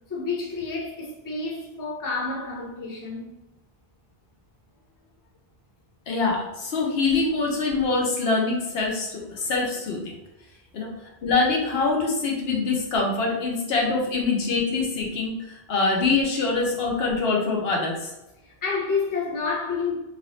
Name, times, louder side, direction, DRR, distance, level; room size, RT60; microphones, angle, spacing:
voice 1, 0.1-3.4 9.4-9.5 18.4-20.0, left 4 dB, 25° left, 0.5 m, -29 dB
voice 2, 6.1-10.1 10.7-10.9 11.2-18.1, left 3 dB, 75° left, 0.9 m, -24 dB
3.0 x 2.5 x 3.0 m
omnidirectional pair, 1.0 m